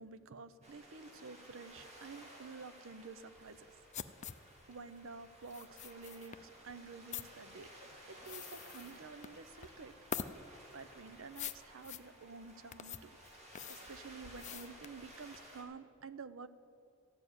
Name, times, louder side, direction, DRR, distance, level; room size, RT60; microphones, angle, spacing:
voice 1, 0.0-3.7 4.7-7.7 8.1-9.9 10.7-13.1 13.7-16.5, right 4 dB, 65° right, 14 dB, 0.6 m, -50 dB
sound 1, 0.6-15.6, right 1 dB, 30° right, 2.7 m, -56 dB
sound 2, 3.4-15.6, left 8 dB, 35° left, 0.5 m, -47 dB
sound 3, 8.2-13.8, right 3 dB, ahead, 1.4 m, -72 dB
14.0 x 7.1 x 9.6 m, 2.5 s
head